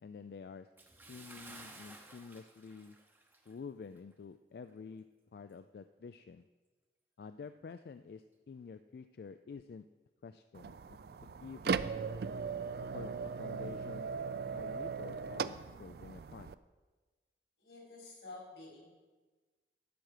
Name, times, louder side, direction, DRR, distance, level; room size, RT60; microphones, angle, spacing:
voice 1, 0.0-0.7 1.1-3.0 3.5-5.1 5.3-6.4 7.2-9.9 10.2-11.8 12.9-14.1 14.5-16.6, left 5 dB, 60° left, 10 dB, 0.3 m, -49 dB
Bathtub (filling or washing) / Splash splatter, 0.8-3.6 4.0-4.1 4.7-4.8, right 2 dB, 10° right, 0.8 m, -54 dB
sound 1, 10.5-16.5, right 5 dB, 60° right, 0.3 m, -38 dB
voice 2, 17.6-18.9, left 2 dB, 85° left, -2 dB, 3.8 m, -50 dB
12.0 x 7.7 x 5.0 m, 1.3 s
head